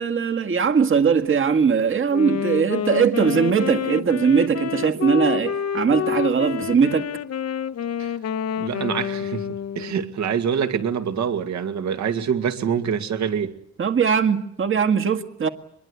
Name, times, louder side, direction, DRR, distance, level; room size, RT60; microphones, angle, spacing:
voice 1, 0.0-7.1 13.8-15.5, right 6 dB, 45° right, 1.9 m, -20 dB
Wind instrument woodwind instrument, 2.1-10.1, left 9 dB, 55° left, 1.1 m, -28 dB
voice 2, 8.6-9.5 9.8-13.5, right 7 dB, 65° right, 2.3 m, -25 dB
24.5 x 21.5 x 8.2 m
cardioid pair, 90°, 30 cm